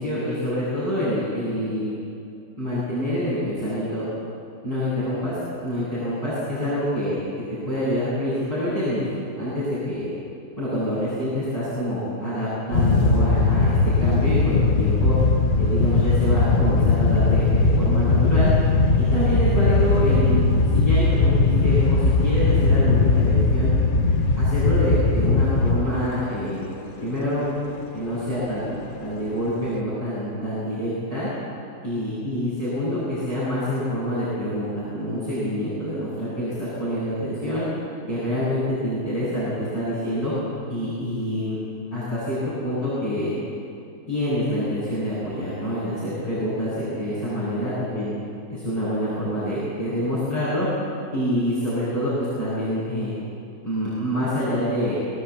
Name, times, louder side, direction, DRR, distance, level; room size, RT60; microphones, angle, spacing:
voice 1, 0.0-1.9 2.6-4.1 4.6-5.4 5.6-7.2 7.7-9.1 9.4-10.1 10.6-15.2 15.6-18.5 19.0-23.7 24.4-26.7 27.0-27.4 27.9-31.3 31.8-37.6 38.1-40.3 40.7-41.6 41.9-43.3 44.1-48.1 48.5-50.7 51.1-53.1 53.6-55.0, equal, 20° left, -12 dB, 8.2 m, -26 dB
sound 1, 12.7-26.2 26.4-26.6 27.3-27.6 28.2-28.4 29.5-29.7, left 3 dB, 40° left, 1.0 m, -19 dB
26.5 x 17.0 x 8.6 m, 2.5 s
omnidirectional pair, 1.7 m